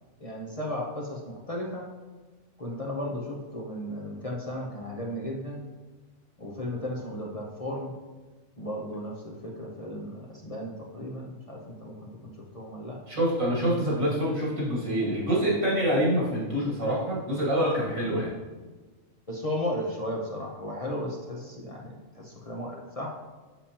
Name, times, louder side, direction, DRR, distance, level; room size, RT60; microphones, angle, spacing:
voice 1, 0.2-1.9 2.6-5.6 6.4-7.9 8.6-13.0 19.3-23.2, left 1 dB, 35° left, -3 dB, 0.7 m, -35 dB
voice 2, 13.1-18.3, equal, 80° right, -5 dB, 2.5 m, -26 dB
7.2 x 7.0 x 2.8 m, 1.3 s
omnidirectional pair, 1.4 m